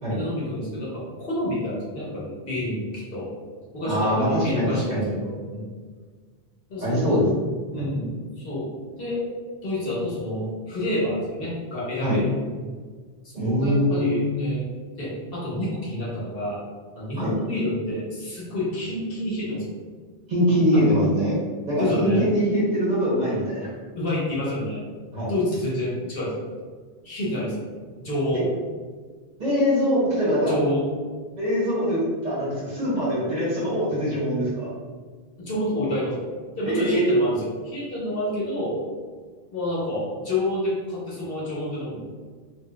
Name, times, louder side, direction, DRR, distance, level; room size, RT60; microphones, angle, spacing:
voice 1, 0.1-3.3 3.7-5.7 6.7-7.2 7.7-8.1 8.4-8.7 9.0-9.2 9.6-12.3 13.2-14.7 15.0-16.6 16.9-19.9 20.7-20.9 21.8-22.3 24.0-24.8 25.3-26.4 27.0-27.7 28.0-28.4 30.5-30.9 35.4-36.3 36.6-38.8 39.5-42.0, left 1 dB, 65° left, -6 dB, 1.2 m, -28 dB
voice 2, 3.8-5.1 6.8-7.2 7.8-7.9 12.0-12.2 13.3-14.2 17.2-17.3 20.3-21.3 21.6-23.7 25.1-25.3 29.4-30.5 31.4-34.7 36.7-37.1, equal, 45° right, -7 dB, 1.0 m, -23 dB
4.1 x 2.2 x 2.3 m, 1.5 s
omnidirectional pair, 1.0 m